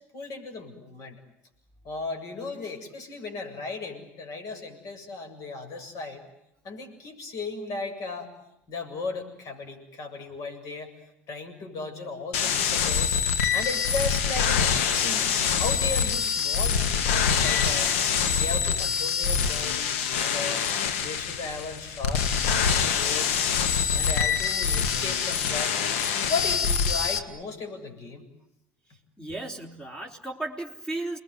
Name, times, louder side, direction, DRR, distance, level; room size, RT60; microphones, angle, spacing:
voice 1, 0.1-1.2 1.8-6.2 6.6-8.3 8.7-10.9 11.3-13.2 13.5-15.3 15.6-17.9 18.4-20.6 21.0-23.3 23.6-25.8 26.3-28.2, left 3 dB, 50° left, 5 dB, 7.5 m, -36 dB
sound 1, 12.3-27.2, left 7 dB, 75° left, 2.0 m, -25 dB
voice 2, 29.2-31.2, right 2 dB, 10° left, 3 dB, 3.9 m, -35 dB
29.5 x 21.0 x 9.6 m, 0.83 s
hypercardioid pair, 80°, 7 cm